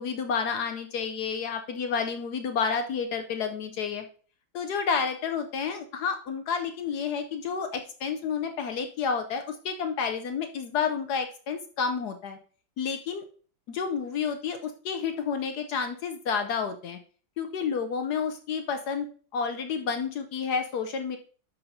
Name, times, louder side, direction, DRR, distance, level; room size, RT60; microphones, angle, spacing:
voice 1, 0.0-4.0 4.5-12.4 12.8-13.2 13.7-17.0 17.4-19.1 19.3-21.2, left 6 dB, 70° left, 7 dB, 1.0 m, -30 dB
12.5 x 5.3 x 2.7 m, 0.42 s
omnidirectional pair, 2.1 m